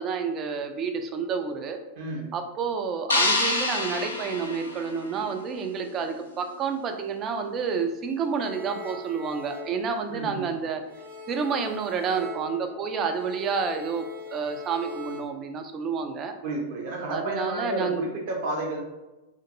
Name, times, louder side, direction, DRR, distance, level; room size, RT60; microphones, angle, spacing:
voice 1, 0.0-1.8 2.3-10.8 11.3-16.3 17.1-18.1, right 5 dB, 30° right, 6 dB, 0.3 m, -29 dB
voice 2, 2.0-2.3 10.1-10.6 16.4-18.8, right 1 dB, 50° right, 0 dB, 0.7 m, -31 dB
sound 1, 3.1-5.4, left 2 dB, 80° left, 0.4 m, -27 dB
sound 2, 8.4-10.5 10.8-15.2, left 3 dB, 80° right, 1.0 m, -41 dB
2.5 x 2.5 x 2.7 m, 1.0 s
figure-of-eight pair, 90°, 0 cm